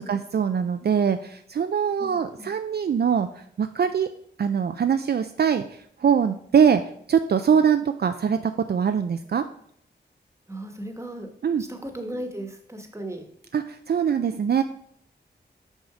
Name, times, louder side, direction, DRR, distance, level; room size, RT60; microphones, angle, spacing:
voice 1, 0.0-4.1 4.4-6.8 7.1-9.5 11.4-11.6 13.5-14.6, right 7 dB, 60° right, 8 dB, 0.4 m, -23 dB
voice 2, 2.0-2.5 10.5-11.3 11.6-13.2, right 1 dB, 15° right, 5 dB, 1.3 m, -36 dB
6.3 x 5.5 x 4.8 m, 0.66 s
wide cardioid pair, 70°, 18 cm